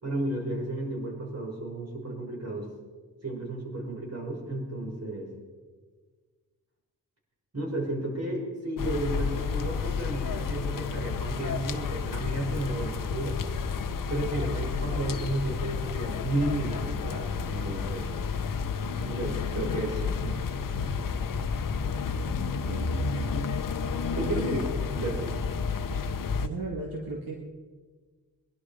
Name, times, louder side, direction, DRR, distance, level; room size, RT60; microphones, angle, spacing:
voice 1, 0.0-2.7 3.2-5.3 7.5-13.4 14.1-18.1 19.1-20.4 23.7-23.8 24.2-24.6 24.9-25.3, right 1 dB, 45° right, -1 dB, 5.9 m, -32 dB
sound 1, 8.8-26.5, left 5 dB, 60° left, 1.0 m, -31 dB
voice 2, 22.4-23.0 24.2-24.4 26.4-27.3, right 3 dB, 70° right, 0 dB, 2.1 m, -36 dB
22.0 x 11.5 x 5.0 m, 1.4 s
cardioid pair, 70°, 37 cm